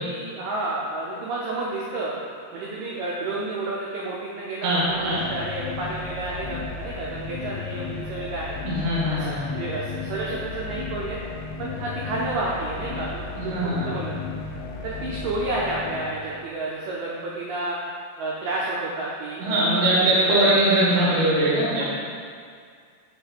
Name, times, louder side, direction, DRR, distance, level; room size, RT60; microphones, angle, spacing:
voice 1, 0.0-2.1 2.5-8.6 9.1-11.2 11.6-14.2 14.8-17.8 18.2-20.5 20.9-21.2, right 2 dB, 80° right, -5 dB, 1.9 m, -30 dB
voice 2, 4.6-5.2 8.7-9.4 13.4-13.9 19.4-21.8, right 1 dB, 60° right, -7 dB, 1.0 m, -21 dB
sound 1, 4.7-16.6, left 5 dB, 85° left, 2.6 m, -35 dB
7.3 x 3.1 x 5.2 m, 2.1 s
omnidirectional pair, 4.6 m